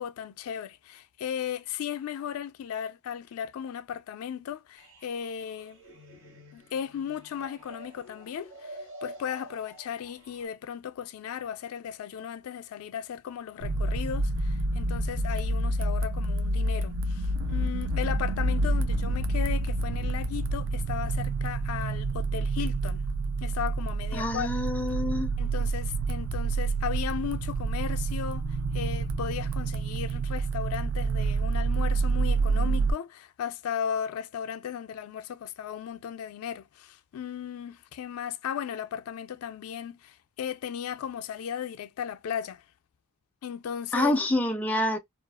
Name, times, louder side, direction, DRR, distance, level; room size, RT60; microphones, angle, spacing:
voice 1, 0.0-5.8 6.5-23.0 23.4-24.5 25.4-28.4 28.7-42.6 43.4-44.1, left 8 dB, 80° left, 0.3 m, -36 dB
sound 1, 4.8-10.5, right 1 dB, 90° right, 1.8 m, -48 dB
sound 2, 13.6-32.9, right 3 dB, 65° right, 0.5 m, -28 dB
voice 2, 24.1-25.3 43.9-45.0, left 1 dB, 5° left, 0.4 m, -27 dB
2.4 x 2.3 x 2.2 m
head